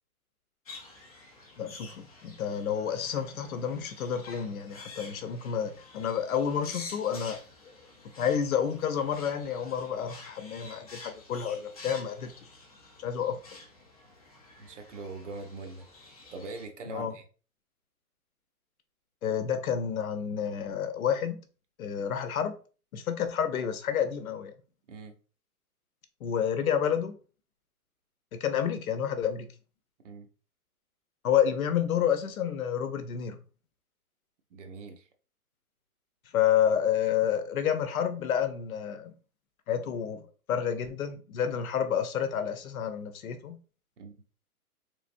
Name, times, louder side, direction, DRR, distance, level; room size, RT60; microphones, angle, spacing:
sound 1, 0.7-16.7, left 3 dB, 25° left, 0.5 m, -49 dB
voice 1, 1.6-7.4 8.2-12.3 13.0-13.4 16.9-17.1 19.2-21.4 21.8-22.6 22.9-24.5 26.2-27.1 28.3-29.5 31.2-33.4 36.3-39.1 39.7-43.6, left 8 dB, 65° left, 0.8 m, -29 dB
voice 2, 14.6-15.9 16.3-17.2 24.9-25.2 30.0-30.3 34.5-35.1 44.0-44.2, right 3 dB, 55° right, 0.7 m, -42 dB
3.4 x 3.4 x 2.5 m
hypercardioid pair, 160°, 45 cm